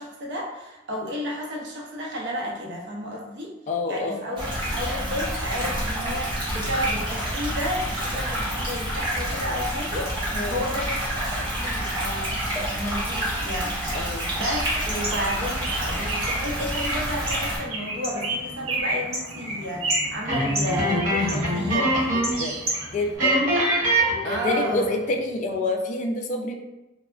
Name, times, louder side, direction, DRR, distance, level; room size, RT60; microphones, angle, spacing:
voice 1, 0.0-3.5 3.9-12.4 12.7-22.1 24.2-24.9, equal, 60° right, -2 dB, 0.6 m, -32 dB
voice 2, 3.7-4.2 10.3-10.6 13.9-14.3 22.4-22.6 22.9-23.5 24.2-26.6, left 2 dB, 40° left, 2 dB, 0.3 m, -27 dB
sound 1, 4.4-17.6, equal, 25° right, 0.9 m, -28 dB
Bird, 14.4-23.2, right 1 dB, 85° right, 0.9 m, -31 dB
sound 2, 20.2-22.5 22.7-22.8 23.2-24.8, right 1 dB, 45° right, 1.2 m, -23 dB
3.2 x 2.0 x 2.3 m, 0.97 s
head